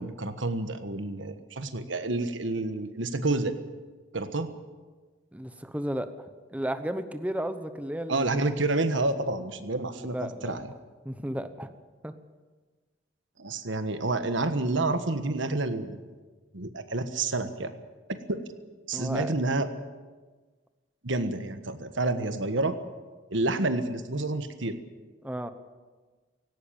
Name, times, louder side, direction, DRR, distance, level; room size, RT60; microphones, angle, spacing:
voice 1, 0.0-3.6 4.1-4.5 8.1-10.7 13.4-16.0 16.5-17.7 18.3-18.4 18.9-19.7 21.0-22.7 23.3-24.8, right 2 dB, 75° right, 9 dB, 1.4 m, -29 dB
voice 2, 5.3-8.3 10.0-10.6 11.0-11.7 12.0-12.1 18.9-19.3 25.2-25.5, right 1 dB, 10° right, 10 dB, 0.9 m, -33 dB
17.5 x 17.0 x 8.8 m, 1.4 s
head